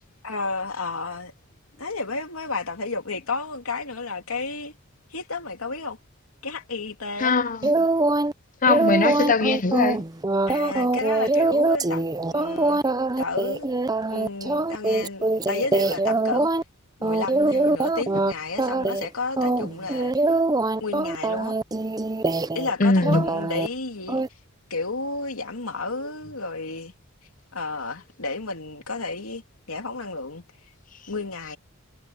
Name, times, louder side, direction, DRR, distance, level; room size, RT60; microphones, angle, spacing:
voice 1, 0.2-1.3 1.8-4.7 5.1-6.0 6.4-7.3 10.5-12.0 12.3-12.8 13.2-13.7 14.1-16.5 17.0-20.1 20.8-21.6 22.5-24.2 24.7-26.9 27.5-29.4 29.7-30.4 31.1-31.6, left 3 dB, 80° left, 2.8 m, -31 dB
voice 2, 7.2-7.6 8.6-10.0 22.8-23.2, left 3 dB, 40° left, 0.8 m, -20 dB
sound 1, 7.6-8.3 8.7-16.6 17.0-18.3 18.6-19.1 19.4-22.7 23.0-23.7 24.1-24.3, right 2 dB, 20° right, 0.6 m, -23 dB
head